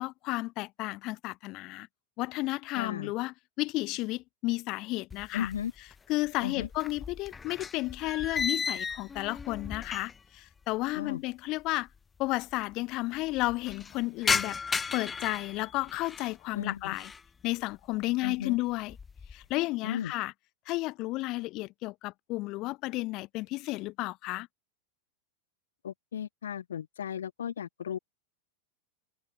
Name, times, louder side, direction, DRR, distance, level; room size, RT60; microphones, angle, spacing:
voice 1, 0.0-1.9 2.2-5.5 6.1-11.9 12.2-14.6 14.9-17.1 17.4-19.0 19.3-20.3 20.7-24.5, left 20 dB, 40° left, 2.8 m, -32 dB
voice 2, 2.8-3.1 5.3-5.7 6.4-6.7 11.0-11.2 16.5-17.0 18.2-18.6 19.8-20.1 25.8-28.0, left 9 dB, 65° left, 2.2 m, -35 dB
sound 1, 5.1-6.0 6.3-10.4 10.6-10.7 11.6-11.7 11.9-12.0 12.3-12.7 13.1-16.4 16.8-17.3 17.7-18.1 18.5-19.4, left 5 dB, 15° left, 0.6 m, -35 dB
figure-of-eight pair, 90°, 0 cm